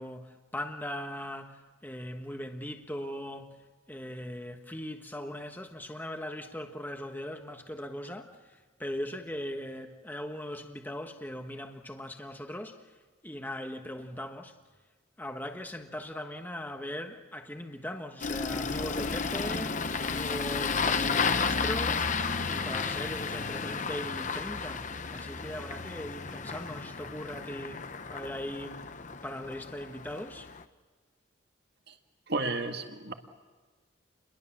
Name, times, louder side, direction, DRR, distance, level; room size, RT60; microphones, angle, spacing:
voice 1, 0.0-13.0 13.2-14.6 15.2-28.9 29.2-30.5, left 1 dB, 10° left, 1.4 m, -40 dB
Engine starting, 18.2-30.6, left 5 dB, 40° left, 0.9 m, -32 dB
voice 2, 32.3-33.1, right 3 dB, 55° right, 1.9 m, -32 dB
30.0 x 22.5 x 7.3 m
head